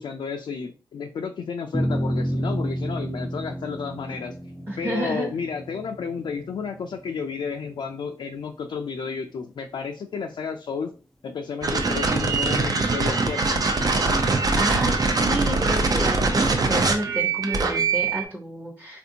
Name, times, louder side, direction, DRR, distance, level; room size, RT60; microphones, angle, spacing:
voice 1, 0.0-4.4 4.8-10.9 11.2-13.7, left 6 dB, 65° left, 4 dB, 0.4 m, -32 dB
sound 1, 1.7-8.3, equal, 5° left, 0.4 m, -30 dB
voice 2, 4.7-5.4 14.5-19.0, right 1 dB, 15° right, -1 dB, 0.9 m, -30 dB
sound 2, 11.6-18.3, right 3 dB, 45° right, 0.6 m, -22 dB
3.5 x 2.5 x 2.7 m, 0.36 s
cardioid pair, 50°, 9 cm